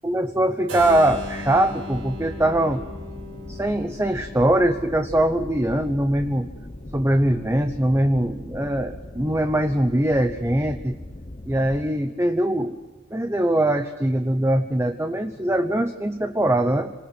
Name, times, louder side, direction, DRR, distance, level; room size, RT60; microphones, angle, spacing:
voice 1, 0.0-2.8 3.5-6.5 6.9-11.0 11.5-12.8 13.1-16.9, right 1 dB, 15° right, 7 dB, 0.9 m, -22 dB
Keyboard (musical), 0.7-6.5, equal, 85° right, 7.5 m, -38 dB
sound 1, 0.8-11.9, left 1 dB, 30° left, 0.8 m, -39 dB
27.5 x 20.0 x 6.2 m, 1.2 s
head